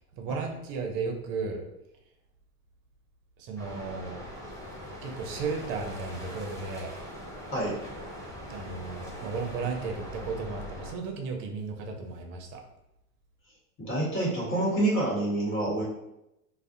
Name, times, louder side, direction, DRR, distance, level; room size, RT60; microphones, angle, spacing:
voice 1, 0.2-1.6 3.4-4.2 5.0-6.9 8.5-12.6, right 4 dB, 45° right, 3 dB, 0.6 m, -34 dB
sound 1, 3.6-10.9, equal, 5° left, 0.7 m, -42 dB
voice 2, 13.8-15.8, right 1 dB, 25° left, -5 dB, 1.1 m, -27 dB
2.3 x 2.0 x 2.6 m, 0.87 s
hypercardioid pair, 95°, 44 cm